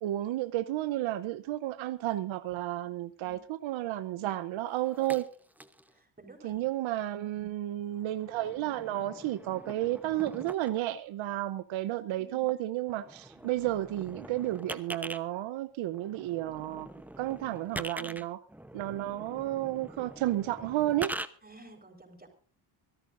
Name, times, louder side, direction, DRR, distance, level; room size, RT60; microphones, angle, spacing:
voice 1, 0.0-5.3 6.4-16.9 17.2-18.4 18.7-21.1, right 14 dB, 85° right, 0.9 m, -32 dB
voice 2, 3.0-3.4 5.9-6.6 7.3-7.5 12.2-12.5 17.9-18.2 21.4-22.3, right 2 dB, 20° right, 5.1 m, -53 dB
sound 1, 4.7-5.9 6.5-6.7 7.7-10.8 12.5-12.6 12.8-15.2 15.9-21.3, right 1 dB, 5° right, 0.9 m, -44 dB
25.0 x 13.5 x 2.6 m
cardioid pair, 95°, 46 cm